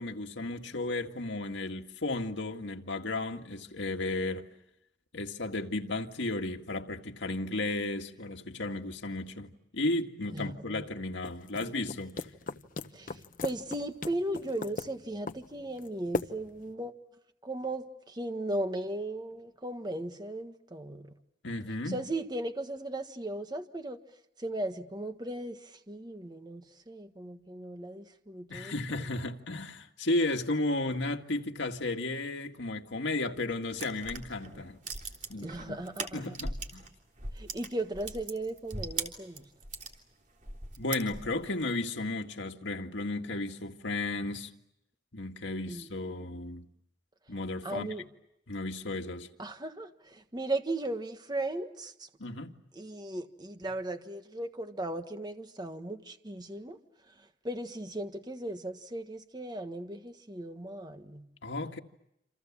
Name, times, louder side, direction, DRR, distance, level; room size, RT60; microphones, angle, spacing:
voice 1, 0.0-4.5 5.1-12.3 21.4-22.0 28.5-34.8 35.3-35.8 36.1-36.9 40.8-44.5 45.1-46.7 47.3-47.9 48.5-49.3 52.2-52.5 61.4-61.8, left 2 dB, 85° left, 1.9 m, -34 dB
voice 2, 10.3-10.9 12.9-16.9 17.4-21.1 21.9-24.0 24.4-29.0 35.4-36.3 37.3-39.4 45.7-45.9 47.6-48.1 49.4-52.1 52.7-56.8 57.4-61.3, right 1 dB, 20° right, 1.5 m, -37 dB
sound 1, 11.2-16.7, left 2 dB, 45° left, 1.0 m, -39 dB
sound 2, 33.7-36.9 37.2-39.9 40.4-41.5, right 3 dB, 45° right, 3.4 m, -39 dB
28.5 x 27.5 x 7.3 m
head